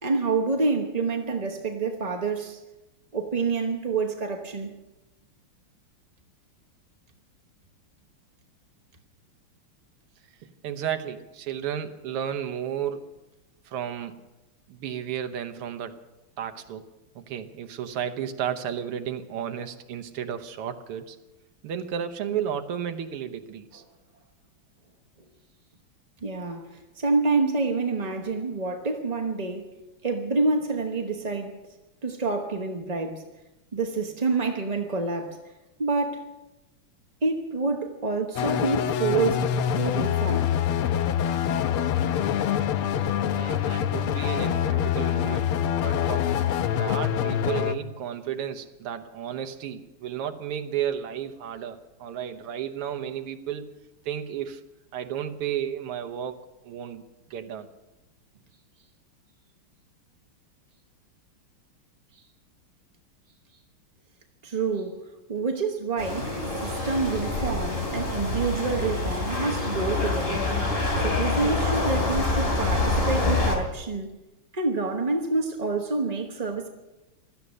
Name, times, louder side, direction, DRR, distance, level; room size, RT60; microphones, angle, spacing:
voice 1, 0.0-2.6 3.1-4.7 26.2-29.7 30.0-31.6 32.0-33.3 33.7-35.4 35.8-36.2 37.2-40.5 64.4-70.5 71.0-74.1 74.5-76.7, right 3 dB, 35° right, 0.6 m, -27 dB
voice 2, 10.4-13.1 13.7-14.1 14.7-16.0 16.4-21.2 21.6-23.8 43.3-45.5 45.8-46.3 46.8-53.8 54.1-54.6 54.9-57.0 57.3-57.7, right 9 dB, 85° right, 1.9 m, -33 dB
sound 1, 38.4-47.7, left 9 dB, 80° left, 1.7 m, -25 dB
sound 2, 66.0-73.6, left 2 dB, 25° left, 3.3 m, -26 dB
16.5 x 13.0 x 6.4 m
omnidirectional pair, 2.4 m